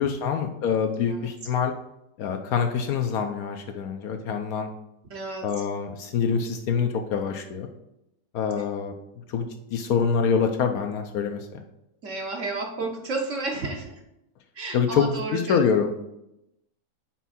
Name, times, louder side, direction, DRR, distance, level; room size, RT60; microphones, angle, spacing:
voice 1, 0.0-1.7 2.2-4.7 5.4-7.7 8.3-8.9 9.3-11.4 14.7-15.9, left 6 dB, 75° left, 4 dB, 1.1 m, -25 dB
voice 2, 1.0-1.3 5.1-5.5 12.0-14.0 14.5-15.6, right 3 dB, 60° right, 0 dB, 1.1 m, -32 dB
5.9 x 4.5 x 4.1 m, 0.86 s
omnidirectional pair, 1.6 m